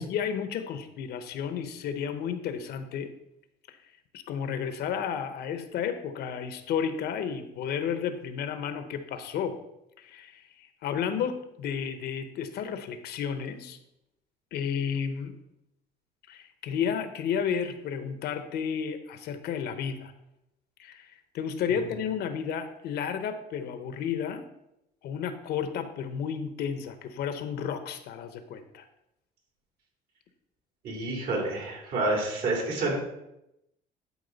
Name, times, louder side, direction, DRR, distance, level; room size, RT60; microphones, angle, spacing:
voice 1, 0.0-3.1 3.7-3.8 4.1-9.6 10.0-13.8 14.5-15.4 16.3-20.1 20.8-24.4 25.0-28.8, left 7 dB, 75° left, 9 dB, 0.9 m, -32 dB
voice 2, 30.8-33.0, right 2 dB, 70° right, -1 dB, 3.4 m, -28 dB
11.0 x 4.7 x 4.0 m, 0.86 s
cardioid pair, 110°, 17 cm